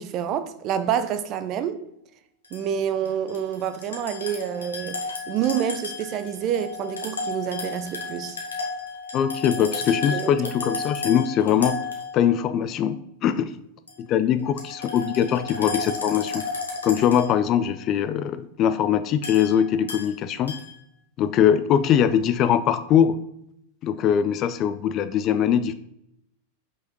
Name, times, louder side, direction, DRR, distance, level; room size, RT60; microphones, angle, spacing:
voice 1, 0.0-1.8 2.5-8.4 9.6-9.8 10.1-10.3, right 9 dB, 35° right, 0.7 m, -28 dB
sound 1, 2.4-2.6 3.1-12.5 13.9-14.0 14.4-17.7 19.2-20.1 20.5-20.8, left 3 dB, 70° left, 1.5 m, -33 dB
voice 2, 9.1-11.8 12.1-13.5 14.1-16.5 16.8-20.5 21.2-23.2 23.8-25.7, left 9 dB, 35° left, 0.4 m, -22 dB
5.6 x 5.4 x 5.2 m
figure-of-eight pair, 90°, 0 cm